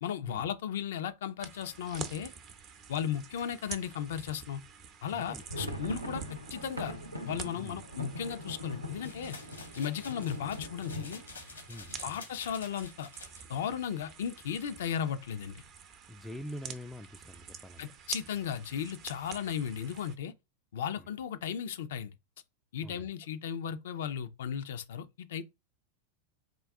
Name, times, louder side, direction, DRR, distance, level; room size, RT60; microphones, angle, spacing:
voice 1, 0.0-2.3 2.9-4.6 5.0-6.9 7.2-9.4 9.8-11.2 12.0-13.1 13.5-15.6 17.8-20.3 20.7-22.1 22.7-25.4, left 8 dB, 60° left, 0.5 m, -35 dB
sound 1, 1.4-20.2, right 7 dB, 35° right, 0.6 m, -48 dB
voice 2, 5.1-5.7 7.5-7.8 11.7-12.2 16.1-17.9 21.0-21.1 22.8-23.1, equal, ahead, 0.4 m, -45 dB
sound 2, 5.2-12.9 13.2-13.3 13.6-13.8 14.3-14.8, left 1 dB, 85° right, 0.7 m, -42 dB
sound 3, 9.0-13.5, left 4 dB, 75° left, 1.0 m, -50 dB
3.7 x 2.3 x 3.4 m
figure-of-eight pair, 90°, 0 cm